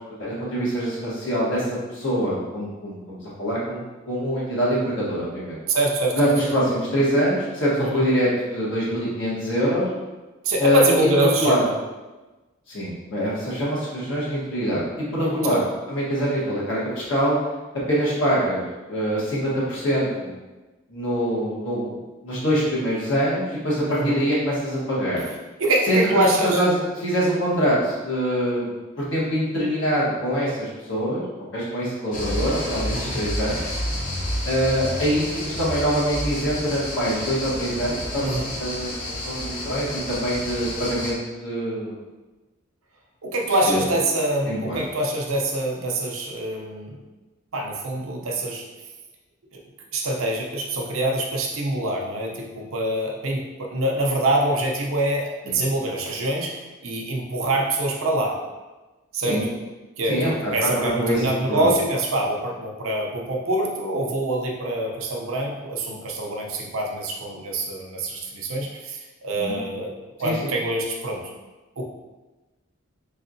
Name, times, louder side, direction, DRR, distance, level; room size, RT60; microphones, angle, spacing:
voice 1, 0.1-5.6 6.1-9.9 10.6-11.6 12.7-15.6 15.9-16.8 17.1-17.4 17.9-20.3 20.9-22.0 22.2-25.2 25.9-31.2 31.5-33.6 34.4-42.0 43.7-43.8 44.4-44.8 55.4-55.6 59.3-59.4 60.1-61.8 69.3-69.6 70.2-70.5, equal, 65° left, -7 dB, 1.3 m, -24 dB
voice 2, 5.7-6.2 7.8-8.0 10.4-11.7 15.2-15.6 23.9-24.2 25.6-26.6 32.9-33.2 38.2-38.5 43.2-47.0 47.5-48.6 49.5-49.6 49.9-58.4 59.1-59.4 60.0-69.9 70.2-71.2 71.8-71.9, right 1 dB, 80° right, 0 dB, 0.6 m, -25 dB
sound 1, 32.1-41.1, left 1 dB, 35° left, 0.6 m, -30 dB
3.6 x 3.2 x 2.6 m, 1.2 s
head